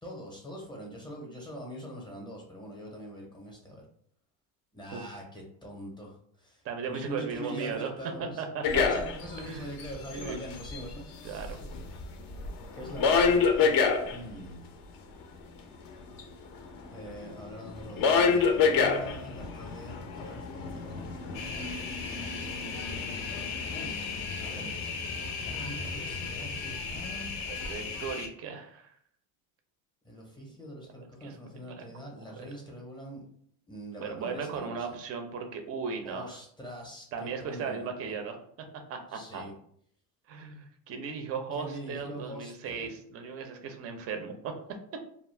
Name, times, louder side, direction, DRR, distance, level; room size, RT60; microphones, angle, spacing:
voice 1, 0.0-3.8 4.7-8.4 8.7-11.6 12.7-13.7 14.1-14.6 16.9-22.4 23.7-24.9 25.3-27.3 30.0-33.2 33.7-34.9 36.0-38.2 39.1-39.5 41.5-42.9, equal, 10° left, -2 dB, 0.6 m, -43 dB
voice 2, 6.6-7.9 8.4-8.8 9.4-9.7 10.1-10.4 11.2-11.6 27.6-28.9 31.2-31.4 31.8-31.9 32.4-32.5 34.0-36.4 37.1-38.4 38.9-39.4 40.3-44.5, right 5 dB, 35° right, 5 dB, 0.4 m, -37 dB
sound 1, 8.6-9.4 9.8-10.9 11.4-14.2 16.2-16.3 16.5-28.1, left 5 dB, 50° left, 0.5 m, -29 dB
sound 2, 21.3-28.3, left 5 dB, 75° left, 0.7 m, -37 dB
2.3 x 2.1 x 3.1 m, 0.64 s
supercardioid pair, 115°, 48 cm